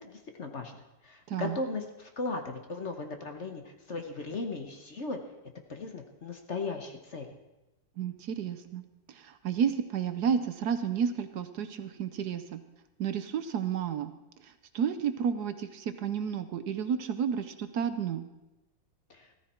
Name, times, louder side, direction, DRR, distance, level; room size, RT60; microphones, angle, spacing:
voice 1, 0.0-5.2 5.7-7.3 19.1-19.3, left 3 dB, 45° left, 5 dB, 1.2 m, -37 dB
voice 2, 8.0-8.8 9.1-12.6 13.0-14.1 14.7-18.2, right 7 dB, 65° right, 10 dB, 1.2 m, -31 dB
14.5 x 14.0 x 4.3 m, 0.98 s
omnidirectional pair, 2.0 m